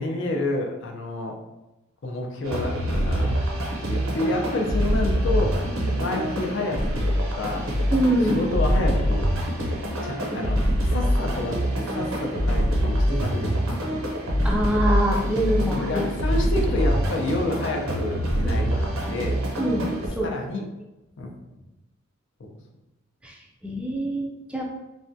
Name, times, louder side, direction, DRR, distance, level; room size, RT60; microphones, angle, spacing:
voice 1, 0.0-1.4 2.0-3.3 3.9-5.6 6.0-7.7 8.2-9.3 9.6-9.7 10.0-13.8 15.6-19.4 20.2-20.6 21.2-21.3 22.4-22.6, left 1 dB, 60° left, 1 dB, 0.5 m, -29 dB
sound 1, 2.4-20.1, equal, 90° right, 0.7 m, -25 dB
voice 2, 7.9-8.4 10.3-10.4 14.4-16.1 18.4-18.5 19.6-20.3 23.2-23.4 23.6-24.6, right 1 dB, 5° right, -1 dB, 0.4 m, -25 dB
3.3 x 2.1 x 2.6 m, 0.96 s
head